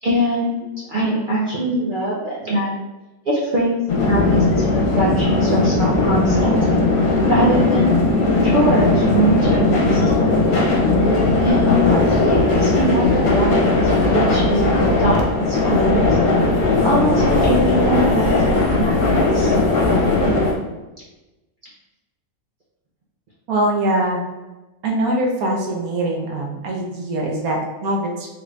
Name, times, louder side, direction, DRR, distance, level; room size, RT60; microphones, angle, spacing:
voice 1, 0.0-2.7 3.3-6.7 7.3-8.0 8.4-10.0 11.4-13.8 14.1-16.2 16.8-18.9 19.3-19.5, equal, 55° right, -6 dB, 0.6 m, -22 dB
sound 1, 3.9-20.5, left 2 dB, 70° left, 1.0 m, -17 dB
voice 2, 23.5-24.2 24.8-28.3, right 1 dB, 85° right, 0 dB, 1.2 m, -22 dB
3.4 x 2.5 x 3.2 m, 1.1 s
omnidirectional pair, 1.5 m